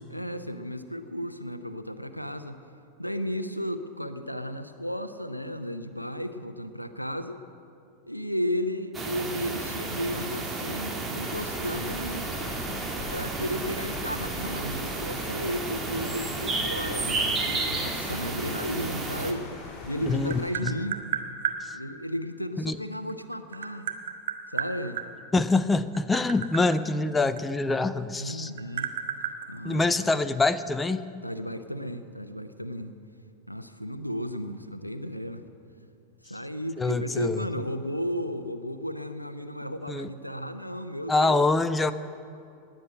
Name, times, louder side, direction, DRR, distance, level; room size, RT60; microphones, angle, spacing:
voice 1, 0.1-2.6 3.0-7.4 8.1-12.3 13.1-19.5 19.9-21.0 21.7-23.9 24.5-25.0 28.2-28.9 29.5-30.1 31.2-32.9 33.5-35.4 36.2-41.5, equal, 90° left, 9 dB, 0.7 m, -34 dB
sound 1, 8.9-19.3, right 3 dB, 15° right, 1.8 m, -32 dB
sound 2, 11.3-20.5, left 3 dB, 25° left, 3.6 m, -42 dB
Tap, 19.7-21.6 22.9-25.1 25.8-28.0 28.3-30.3, right 9 dB, 60° right, 1.1 m, -32 dB
voice 2, 20.0-20.7 21.6-21.8 22.6-22.8 25.3-28.5 29.6-31.1 36.8-37.5 39.9-40.1 41.1-41.9, left 3 dB, 10° left, 13 dB, 0.6 m, -25 dB
18.5 x 7.7 x 9.7 m, 2.5 s
figure-of-eight pair, 90°, 0 cm